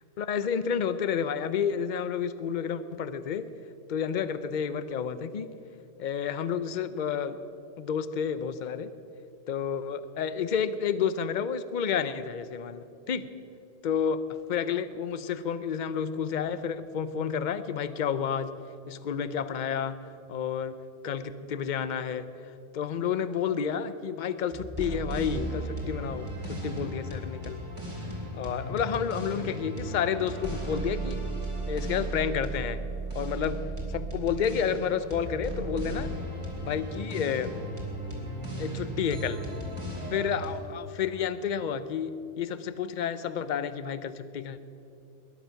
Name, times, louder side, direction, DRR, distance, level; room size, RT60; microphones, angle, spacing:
voice 1, 0.2-3.5 3.9-5.5 6.0-7.4 7.8-8.9 9.5-13.3 13.8-14.2 14.5-18.5 18.9-20.0 20.3-20.8 21.0-22.3 22.7-27.6 28.3-31.2 31.7-32.8 33.1-36.1 36.6-37.5 38.6-39.4 40.1-44.6, left 7 dB, 45° left, 13 dB, 0.7 m, -30 dB
sound 1, 24.5-40.5, right 2 dB, 25° right, 2.9 m, -35 dB
21.0 x 11.0 x 5.8 m, 2.7 s
omnidirectional pair, 1.3 m